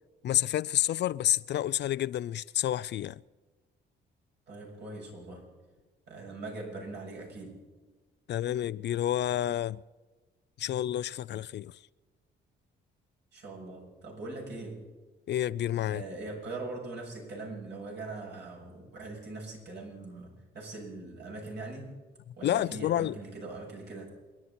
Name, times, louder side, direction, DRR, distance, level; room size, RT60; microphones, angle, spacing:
voice 1, 0.2-3.2 8.3-9.8 10.6-11.7 15.3-16.0 22.4-23.1, left 12 dB, 60° left, 0.5 m, -29 dB
voice 2, 4.5-5.5 6.1-7.7 13.3-14.9 15.9-22.0 22.4-24.2, right 2 dB, 60° right, 7.3 m, -41 dB
28.0 x 11.0 x 4.3 m
cardioid pair, 90°, 20 cm